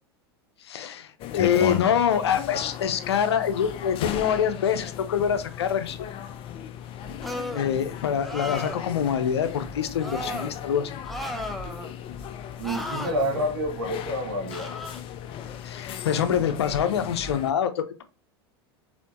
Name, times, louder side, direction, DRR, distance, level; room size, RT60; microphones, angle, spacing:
voice 1, 0.7-6.1 7.5-10.9 15.6-18.0, left 8 dB, 85° left, 10 dB, 0.6 m, -25 dB
sound 1, 1.2-17.5, left 9 dB, 40° left, 0.6 m, -36 dB
sound 2, 7.2-7.7 8.2-8.9 10.0-10.5 11.1-11.9 12.6-13.1 14.5-15.0, left 1 dB, ahead, 0.8 m, -34 dB
voice 2, 12.6-14.7, equal, 75° right, 0 dB, 2.3 m, -28 dB
4.2 x 3.7 x 2.9 m, 0.32 s
hypercardioid pair, 100°, 13 cm